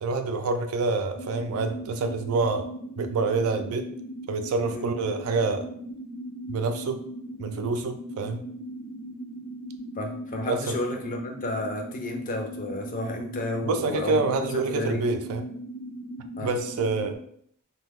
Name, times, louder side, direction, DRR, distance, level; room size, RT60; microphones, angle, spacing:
voice 1, 0.0-2.7 3.0-3.9 4.3-5.7 6.5-7.0 7.4-8.4 10.5-10.8 13.6-15.4 16.4-17.2, right 3 dB, 75° right, 8 dB, 0.3 m, -27 dB
sound 1, 1.1-17.2, equal, 80° left, 0.7 m, -39 dB
voice 2, 10.0-14.3 14.5-15.0 16.4-16.5, left 1 dB, 40° left, 3 dB, 0.5 m, -32 dB
2.7 x 2.2 x 3.5 m, 0.67 s
head